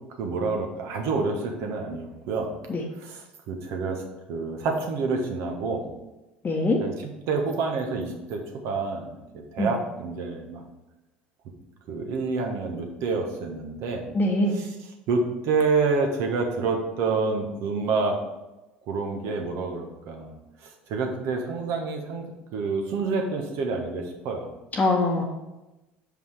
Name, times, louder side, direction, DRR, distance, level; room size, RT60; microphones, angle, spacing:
voice 1, 0.2-2.5 3.0-3.2 3.5-4.0 4.3-5.9 6.8-6.9 7.3-10.6 11.9-14.1 14.6-14.7 15.1-18.2 18.9-20.3 20.9-24.5, right 4 dB, 60° right, 3 dB, 1.4 m, -28 dB
voice 2, 6.4-6.8 9.6-9.7 14.1-14.5 24.7-25.2, left 2 dB, 30° left, -2 dB, 1.1 m, -23 dB
6.1 x 5.3 x 5.0 m, 1.0 s
hypercardioid pair, 65°, 5 cm